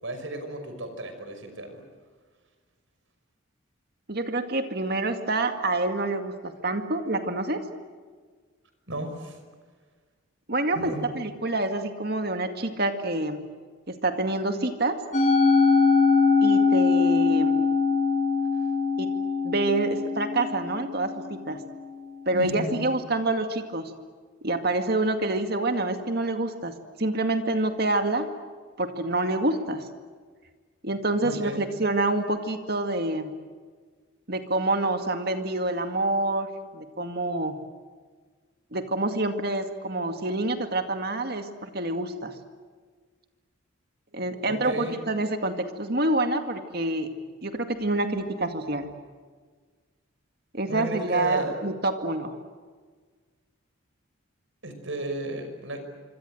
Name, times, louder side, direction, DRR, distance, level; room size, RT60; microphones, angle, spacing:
voice 1, 0.0-1.8 8.9-9.4 10.7-11.1 22.3-22.8 31.2-31.6 44.1-44.9 50.7-51.5 54.6-55.8, right 1 dB, 65° right, 7 dB, 5.7 m, -33 dB
voice 2, 4.1-7.6 10.5-13.4 13.9-15.0 16.4-17.6 19.0-19.1 19.4-21.6 22.3-23.9 24.4-28.3 28.8-29.9 30.8-33.3 34.3-37.6 38.7-42.3 44.1-47.1 47.4-48.9 50.5-52.3, right 2 dB, 50° right, 7 dB, 2.1 m, -27 dB
Musical instrument, 15.1-21.5, left 4 dB, 35° left, 6.4 m, -22 dB
26.5 x 25.5 x 7.9 m, 1.5 s
head